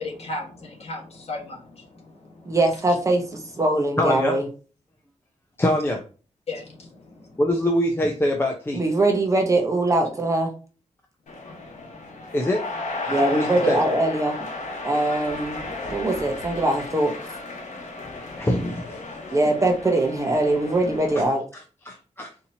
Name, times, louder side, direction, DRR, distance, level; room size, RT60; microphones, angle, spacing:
voice 1, 0.0-2.6 6.5-7.4 11.4-12.3 13.2-13.3, left 2 dB, 60° left, 1.4 m, -37 dB
voice 2, 2.4-4.4 8.7-10.5 13.1-14.5 14.8-17.1 19.3-21.4, right 2 dB, 25° right, 0.7 m, -22 dB
voice 3, 4.0-4.4 5.6-6.0 7.4-8.8 12.3-12.6 13.3-13.8 18.4-19.0 21.8-22.3, left 1 dB, 20° left, 0.5 m, -23 dB
sound 1, 11.3-21.3, left 2 dB, 85° left, 1.0 m, -34 dB
4.3 x 2.7 x 2.7 m
wide cardioid pair, 180°, 12 cm